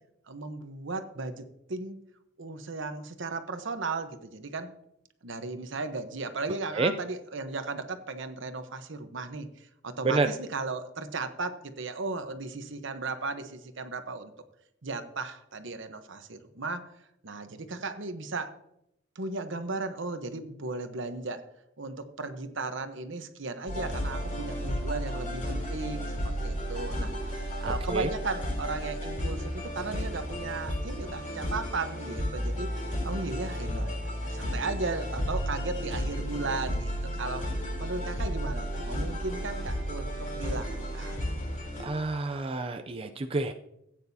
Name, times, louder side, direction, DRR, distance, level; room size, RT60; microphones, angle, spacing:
voice 1, 0.3-2.0 2.4-4.7 5.2-14.3 14.8-16.9 17.2-18.6 19.1-21.4 21.8-32.7 33.0-34.0 34.3-37.4 37.8-40.7 40.9-41.2, right 3 dB, 65° right, 9 dB, 1.0 m, -36 dB
sound 1, 23.7-41.9, equal, 40° left, 4.0 m, -33 dB
voice 2, 27.6-28.1 41.8-43.5, right 3 dB, 30° right, 6 dB, 0.4 m, -28 dB
16.5 x 9.0 x 2.8 m, 0.80 s
head